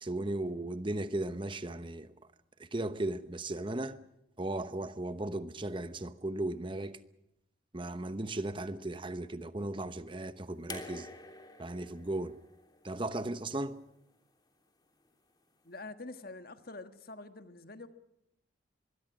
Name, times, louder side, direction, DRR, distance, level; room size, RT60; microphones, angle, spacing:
voice 1, 0.0-2.1 2.6-4.0 4.4-7.0 7.7-11.1 11.6-12.4 12.8-13.8, right 2 dB, 25° right, 0.9 m, -36 dB
sound 1, 10.7-13.9 15.1-15.2, left 3 dB, 20° left, 3.1 m, -48 dB
voice 2, 15.6-17.9, left 2 dB, 50° left, 1.6 m, -46 dB
25.0 x 22.0 x 6.0 m
head